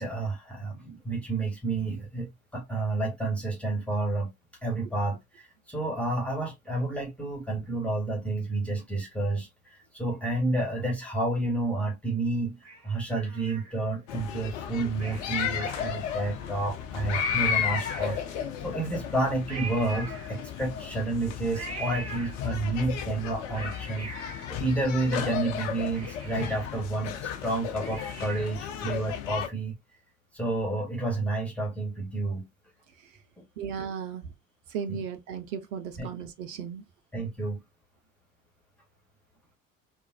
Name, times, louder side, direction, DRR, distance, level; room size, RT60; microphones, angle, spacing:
voice 1, 0.0-4.3 4.6-12.6 12.8-18.2 18.6-24.1 24.5-29.8 30.3-32.4 34.9-35.0 36.0-36.1 37.1-37.6, right 2 dB, 5° left, 1.7 m, -30 dB
Cat, 12.6-14.1 14.9-16.4 16.8-16.9 17.1-18.6 19.5-20.8 21.5-22.8 23.3-25.3 25.6-25.7 25.9-28.7 29.1-29.2, right 3 dB, 40° right, 1.9 m, -43 dB
sound 1, 14.1-29.5, left 8 dB, 65° left, 0.8 m, -34 dB
voice 2, 33.6-34.3 34.7-36.8, right 7 dB, 70° right, 0.7 m, -36 dB
3.8 x 2.5 x 2.7 m
figure-of-eight pair, 55°, 41 cm